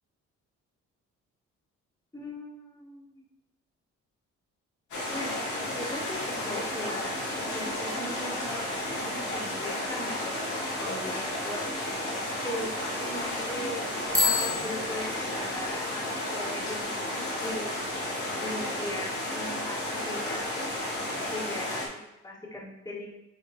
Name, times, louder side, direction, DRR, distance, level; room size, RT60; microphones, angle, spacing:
voice 1, 2.1-3.2 5.1-5.3 5.7-8.7 9.1-11.8 12.4-17.7 18.4-20.5 21.3-23.1, left 1 dB, 10° left, -8 dB, 1.7 m, -39 dB
sound 1, 4.9-21.9, left 1 dB, 85° left, 2.2 m, -32 dB
Bicycle bell, 14.1-15.8, left 3 dB, 10° right, 1.9 m, -29 dB
9.9 x 3.7 x 3.1 m, 0.90 s
cardioid pair, 90°, 30 cm